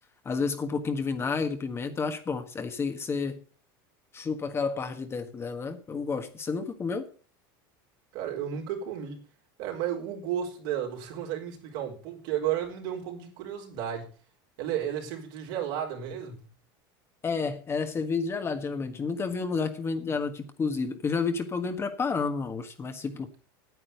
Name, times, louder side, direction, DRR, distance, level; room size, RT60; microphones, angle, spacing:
voice 1, 0.2-3.4 4.1-7.1 17.2-23.3, left 4 dB, 20° left, 1.5 m, -30 dB
voice 2, 8.1-9.2 9.6-14.1 14.6-16.5, right 10 dB, 70° right, 4.1 m, -33 dB
9.4 x 8.6 x 6.9 m
supercardioid pair, 130°, 11 cm